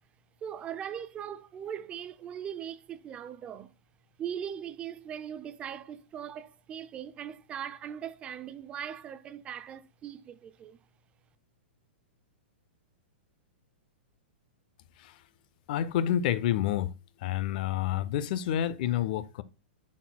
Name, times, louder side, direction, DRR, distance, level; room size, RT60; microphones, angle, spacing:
voice 1, 0.4-3.7 4.2-10.8, right 9 dB, 20° right, 0.4 m, -40 dB
voice 2, 15.7-16.9 17.2-19.4, left 11 dB, 50° left, 0.5 m, -29 dB
10.5 x 4.2 x 2.2 m
hypercardioid pair, 155°, 6 cm